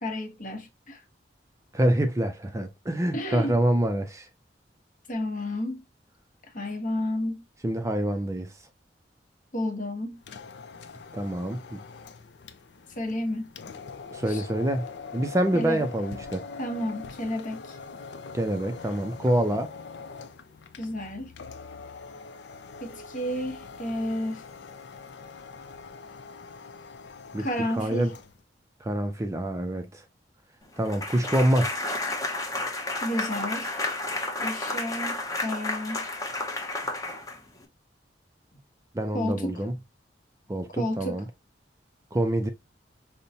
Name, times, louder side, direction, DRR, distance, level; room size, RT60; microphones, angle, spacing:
voice 1, 0.0-1.0 3.1-3.6 5.1-5.8 6.5-7.4 9.5-10.2 13.0-13.5 14.3-14.5 15.5-15.8 16.6-17.8 20.8-21.3 22.8-24.4 27.4-28.1 32.0-32.2 33.0-33.9 34.4-36.0 39.1-39.6 40.8-41.2, left 1 dB, 45° left, 1.0 m, -31 dB
voice 2, 1.7-4.3 7.6-8.5 11.1-11.8 14.1-14.9 15.1-16.4 18.3-19.7 27.3-27.5 27.7-28.1 28.8-30.0 30.8-31.8 38.9-39.7 40.5-41.3 42.1-42.5, right 1 dB, 15° right, 0.4 m, -26 dB
sound 1, 10.2-28.4, left 5 dB, 70° left, 0.5 m, -43 dB
sound 2, 30.9-37.6, left 2 dB, 20° left, 0.7 m, -31 dB
5.3 x 2.1 x 2.7 m
head